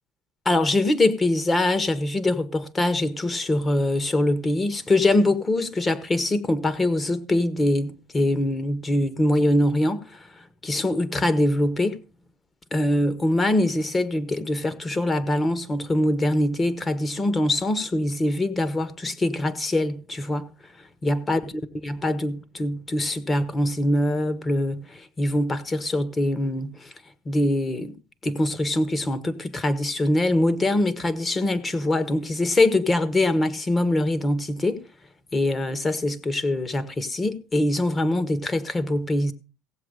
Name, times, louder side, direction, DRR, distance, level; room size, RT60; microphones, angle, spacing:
voice 1, 0.4-10.3 10.6-12.0 12.7-20.5 21.0-26.9 27.2-27.9 28.2-34.8 35.3-39.3, left 1 dB, 25° left, 1.5 m, -23 dB
16.0 x 7.8 x 5.2 m
supercardioid pair, 85°, 0 cm